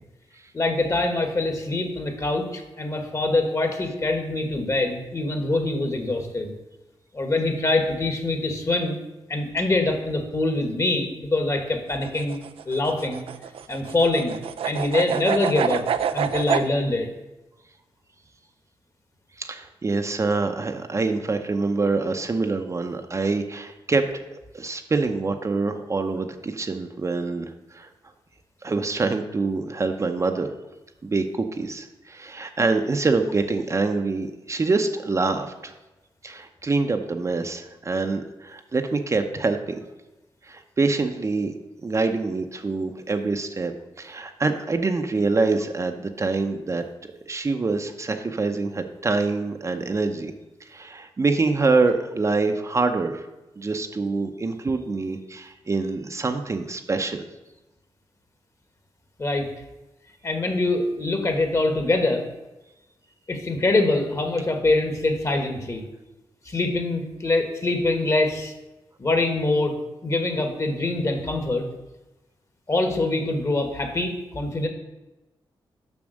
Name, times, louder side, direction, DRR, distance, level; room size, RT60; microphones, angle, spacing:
voice 1, 0.5-6.5 7.1-9.0 9.3-12.4 12.6-13.2 13.7-14.4 14.6-15.9 16.1-17.1 59.2-59.5 60.2-62.2 63.3-65.8 66.4-68.5 69.0-69.7 70.0-71.7 72.7-74.7, left 2 dB, 35° left, 5 dB, 1.5 m, -24 dB
sound 1, 11.9-16.7, right 8 dB, 90° right, 0.5 m, -27 dB
voice 2, 19.4-24.2 24.5-27.9 28.6-30.5 31.0-35.8 36.2-39.8 40.4-41.5 41.8-43.7 44.0-46.8 47.3-50.3 50.6-53.3 53.6-57.3, right 3 dB, 35° right, 6 dB, 0.7 m, -25 dB
7.1 x 5.9 x 6.4 m, 1.0 s
wide cardioid pair, 100°, 9 cm